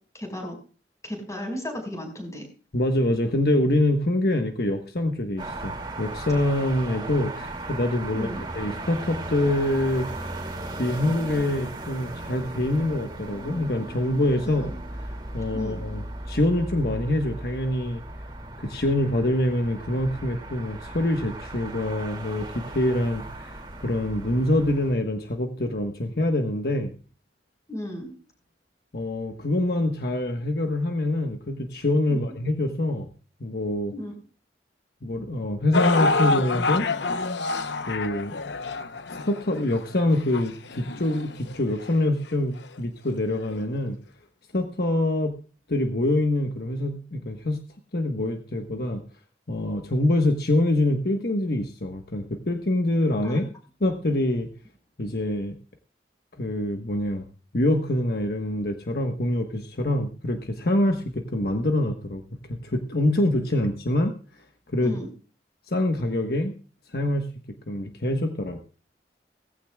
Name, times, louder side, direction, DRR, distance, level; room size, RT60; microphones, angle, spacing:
voice 1, 0.1-0.6 1.0-2.5 8.1-8.4 14.6-14.7 15.5-15.8 27.7-28.1 32.1-32.2 33.9-34.1 53.2-53.4 64.8-65.1, left 1 dB, 20° left, 4 dB, 5.3 m, -34 dB
voice 2, 2.7-8.3 8.5-10.1 10.8-14.7 15.3-18.0 18.6-26.9 28.9-33.1 33.4-33.9 35.0-36.9 37.9-38.4 39.2-44.0 44.5-45.4 45.7-47.6 47.9-49.0 49.5-53.4 53.8-54.5 55.0-55.5 56.4-57.2 57.5-62.2 62.5-64.2 64.7-65.0 65.7-66.5 66.9-67.3 67.7-68.6, left 1 dB, 60° left, 4 dB, 1.3 m, -25 dB
sound 1, 5.4-24.9, right 2 dB, 25° right, 2.5 m, -37 dB
sound 2, 35.7-42.0 42.6-42.7 43.5-43.6, left 3 dB, 85° left, 0.9 m, -27 dB
18.5 x 15.5 x 2.4 m, 0.38 s
head